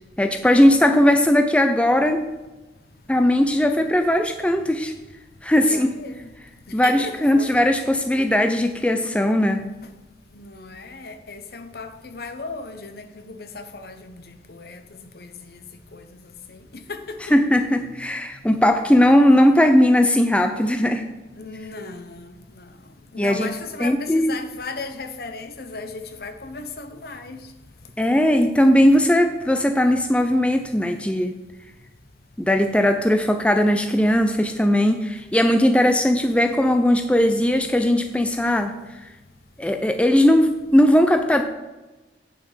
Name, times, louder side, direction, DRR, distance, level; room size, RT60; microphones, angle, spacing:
voice 1, 0.2-2.2 3.1-4.9 5.4-6.0 6.7-9.6 17.3-21.0 23.2-23.5 23.8-24.4 28.0-31.3 32.4-38.7 39.6-41.4, left 1 dB, 5° left, 6 dB, 0.4 m, -18 dB
voice 2, 5.3-6.4 6.7-7.5 10.3-17.3 18.3-18.5 21.3-27.6 27.8-27.9, left 3 dB, 55° left, 8 dB, 0.8 m, -37 dB
8.7 x 6.9 x 5.0 m, 1.1 s
head